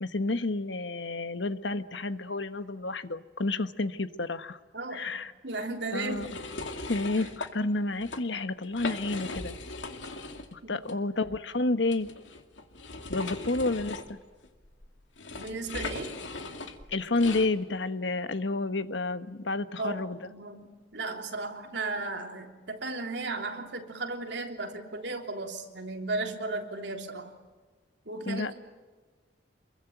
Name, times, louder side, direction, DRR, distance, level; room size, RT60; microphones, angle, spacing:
voice 1, 0.0-4.6 4.9-5.3 5.9-6.3 6.9-9.5 10.5-12.1 13.1-14.2 16.9-20.2 28.3-28.5, left 2 dB, 75° left, 11 dB, 1.2 m, -30 dB
voice 2, 4.7-5.2 5.4-6.4 7.2-7.3 10.6-10.9 15.3-16.2 19.8-27.3 28.1-28.5, right 3 dB, 70° right, 3 dB, 3.4 m, -35 dB
sound 1, 6.1-7.5 7.9-8.2 8.6-10.5 10.8-10.9 11.9-17.5, left 3 dB, 90° left, 2.3 m, -39 dB
28.0 x 22.5 x 9.2 m, 1.4 s
head